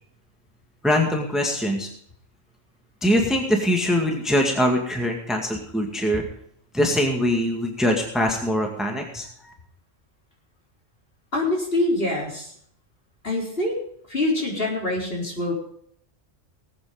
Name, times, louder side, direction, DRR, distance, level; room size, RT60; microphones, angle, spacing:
voice 1, 0.8-1.9 3.0-6.2 6.7-9.5, equal, ahead, 1 dB, 2.0 m, -23 dB
voice 2, 11.3-12.5 13.2-13.8 14.1-15.5, left 2 dB, 50° left, -2 dB, 4.5 m, -25 dB
19.0 x 8.9 x 5.1 m, 0.65 s
omnidirectional pair, 1.3 m